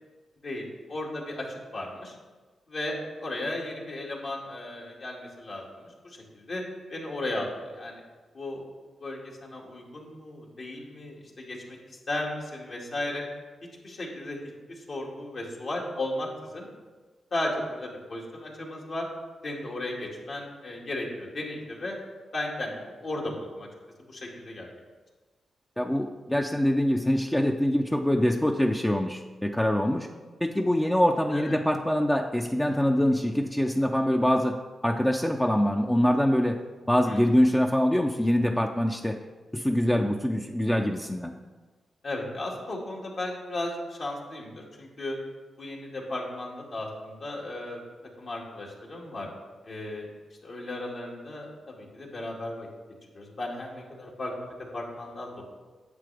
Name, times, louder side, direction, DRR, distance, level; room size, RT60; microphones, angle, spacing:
voice 1, 0.4-2.1 2.7-6.6 6.9-8.0 8.3-8.6 9.0-13.2 13.8-16.7 17.3-19.1 19.4-22.0 22.3-23.7 24.1-24.7 31.3-31.6 37.1-37.3 42.0-45.2 45.6-47.8 48.2-49.3 49.6-50.1 50.4-52.7 53.1-55.4, left 1 dB, 60° left, -2 dB, 2.1 m, -35 dB
voice 2, 25.8-30.1 30.4-34.6 34.8-36.6 36.9-39.2 39.5-41.3, equal, 10° left, 3 dB, 0.5 m, -24 dB
9.4 x 7.4 x 3.4 m, 1.3 s
cardioid pair, 65°, 0 cm